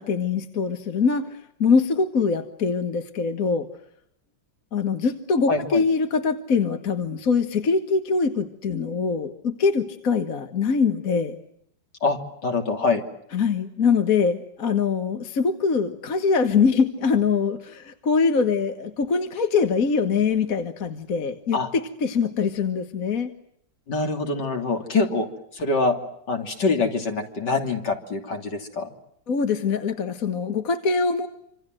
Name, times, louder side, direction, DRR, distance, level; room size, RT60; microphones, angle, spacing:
voice 1, 0.0-3.7 4.7-11.4 13.3-23.3 29.3-31.3, left 5 dB, 50° left, 7 dB, 1.8 m, -23 dB
voice 2, 5.5-5.8 12.0-13.0 21.5-21.7 23.9-25.3 25.5-26.0 26.3-28.9, left 3 dB, 70° left, 4 dB, 3.6 m, -24 dB
27.0 x 26.5 x 7.7 m, 0.72 s
omnidirectional pair, 1.9 m